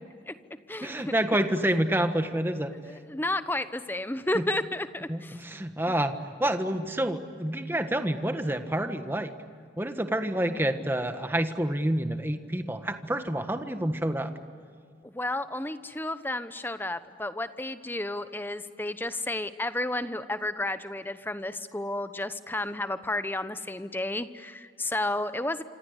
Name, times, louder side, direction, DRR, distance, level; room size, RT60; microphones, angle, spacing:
voice 1, 0.8-2.7 4.3-4.5 5.1-9.3 9.8-14.3, right 1 dB, 15° right, 8 dB, 1.5 m, -28 dB
voice 2, 2.9-5.4 15.0-25.6, left 1 dB, 10° left, 12 dB, 0.9 m, -32 dB
27.0 x 26.5 x 8.1 m, 2.2 s
head